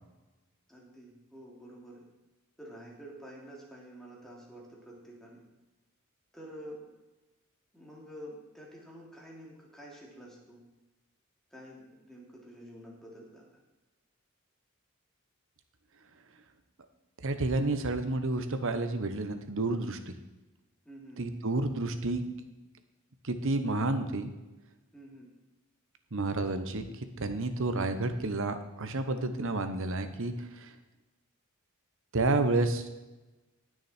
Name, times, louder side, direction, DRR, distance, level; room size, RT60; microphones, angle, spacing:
voice 1, 0.7-2.1 2.6-5.4 6.3-6.8 7.7-10.6 11.5-13.5 20.8-21.2 24.9-25.3, equal, ahead, -4 dB, 2.8 m, -48 dB
voice 2, 17.2-20.1 21.2-22.3 23.2-24.3 26.1-30.7 32.1-32.9, right 2 dB, 60° right, 9 dB, 1.1 m, -30 dB
19.0 x 6.4 x 4.5 m, 1.1 s
head